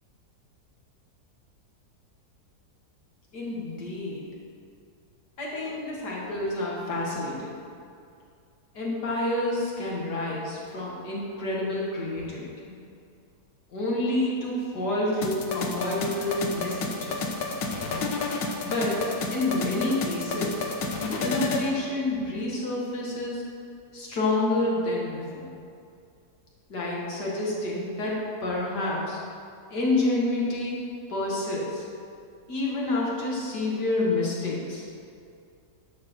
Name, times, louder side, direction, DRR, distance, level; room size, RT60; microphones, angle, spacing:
voice 1, 3.3-4.3 5.4-7.6 8.7-12.7 13.7-17.5 18.6-20.7 21.2-23.4 23.9-25.5 26.7-29.2 29.7-30.8 31.1-31.8 32.5-34.8, left 2 dB, 65° left, -5 dB, 2.4 m, -29 dB
sound 1, 15.2-21.7, left 3 dB, 85° left, 1.6 m, -30 dB
11.0 x 4.4 x 6.6 m, 2.4 s
omnidirectional pair, 1.9 m